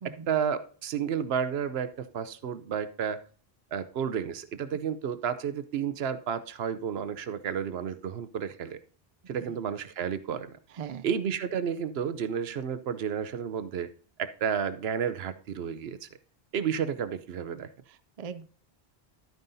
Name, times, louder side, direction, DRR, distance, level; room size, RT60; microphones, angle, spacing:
voice 1, 0.0-3.2 3.7-8.8 9.3-10.6 11.0-13.9 14.2-16.1 16.5-17.7, right 7 dB, 80° right, 12 dB, 0.9 m, -31 dB
voice 2, 10.7-11.1 17.9-18.5, right 7 dB, 50° right, 12 dB, 0.5 m, -41 dB
12.0 x 9.1 x 2.7 m, 0.42 s
omnidirectional pair, 1.0 m